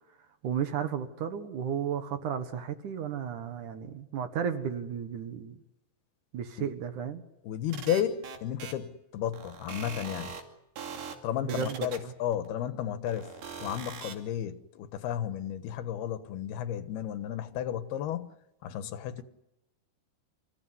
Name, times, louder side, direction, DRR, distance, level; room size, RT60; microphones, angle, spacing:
voice 1, 0.4-5.6 6.3-7.2 11.4-12.1, right 8 dB, 60° right, 2.6 m, -33 dB
voice 2, 7.4-10.3 11.2-13.3 13.6-18.3 18.6-19.2, left 10 dB, 90° left, 3.3 m, -33 dB
sound 1, 7.7-8.7 9.3-10.4 10.8-11.1 11.5-12.5 13.1-14.1, right 6 dB, 90° right, 4.6 m, -41 dB
28.5 x 16.0 x 9.6 m
omnidirectional pair, 4.4 m